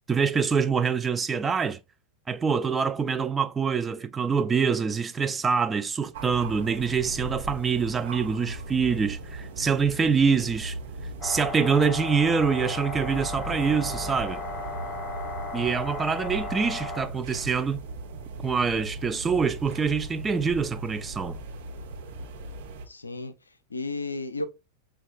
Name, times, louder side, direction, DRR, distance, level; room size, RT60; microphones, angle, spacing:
voice 1, 0.1-1.8 2.3-10.8 11.2-14.4 15.5-17.8 18.4-21.4, right 5 dB, 15° right, 0.3 m, -25 dB
sound 1, 6.1-22.9, right 2 dB, 55° right, 0.8 m, -38 dB
sound 2, 11.2-17.1, left 3 dB, 20° left, 0.6 m, -35 dB
sound 3, 12.9-16.6, right 3 dB, 40° right, 1.2 m, -42 dB
voice 2, 22.9-24.4, left 3 dB, 80° left, 0.4 m, -34 dB
6.1 x 2.3 x 2.3 m
figure-of-eight pair, 90°, 0 cm